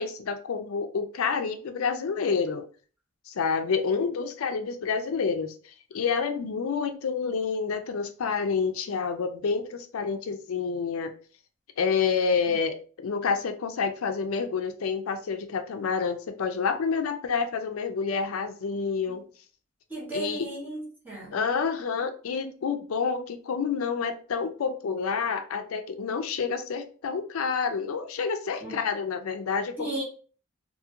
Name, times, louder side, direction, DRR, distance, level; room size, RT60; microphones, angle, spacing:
voice 1, 0.0-2.7 3.3-11.1 11.8-19.2 20.1-20.5 21.3-30.0, left 5 dB, 80° left, 0.4 m, -28 dB
voice 2, 19.9-21.4 28.6-28.8 29.8-30.0, right 1 dB, 10° right, 1.0 m, -35 dB
2.8 x 2.7 x 2.4 m
head